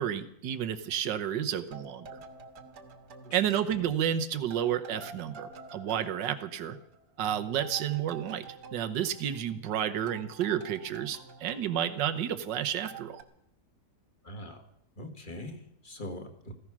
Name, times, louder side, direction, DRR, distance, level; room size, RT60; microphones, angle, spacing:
voice 1, 0.0-2.2 3.3-6.8 7.2-13.2, right 10 dB, 85° right, 9 dB, 1.6 m, -31 dB
sound 1, 1.7-4.2 4.5-9.7 10.1-12.5 12.8-13.2, right 4 dB, 70° right, 2.0 m, -48 dB
voice 2, 14.2-14.6 15.0-16.5, left 1 dB, 30° left, 5 dB, 1.8 m, -42 dB
15.5 x 15.0 x 6.1 m, 0.75 s
omnidirectional pair, 1.9 m